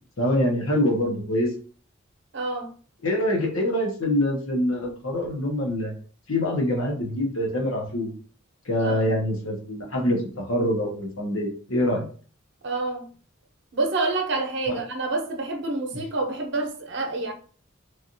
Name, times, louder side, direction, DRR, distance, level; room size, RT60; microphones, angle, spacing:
voice 1, 0.2-1.5 3.0-5.9 6.3-8.1 8.7-12.1 14.7-14.8, left 1 dB, 85° left, 0.9 m, -25 dB
voice 2, 2.3-2.7 8.8-9.1 12.6-13.1 13.7-17.3, right 3 dB, 60° right, 0.7 m, -28 dB
3.3 x 2.5 x 2.6 m
head